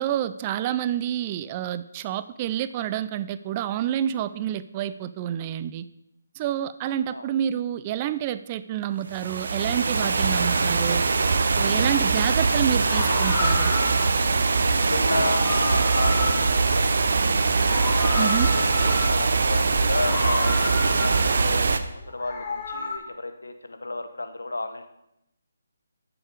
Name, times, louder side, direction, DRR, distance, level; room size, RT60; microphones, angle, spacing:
voice 1, 0.0-5.8 6.4-11.0 11.6-13.7 18.2-18.5, right 11 dB, 25° right, 14 dB, 0.4 m, -28 dB
sound 1, 9.1-21.8, right 4 dB, 55° right, 0.8 m, -22 dB
Meow, 11.9-12.2 12.7-14.2 14.9-17.2 17.5-19.4 19.9-21.5 22.0-23.0, left 4 dB, 30° left, 1.6 m, -32 dB
voice 2, 14.7-17.5 18.0-20.6 21.0-24.9, left 2 dB, 75° left, 8 dB, 1.1 m, -33 dB
10.5 x 7.0 x 5.0 m, 0.84 s
figure-of-eight pair, 145°, 0 cm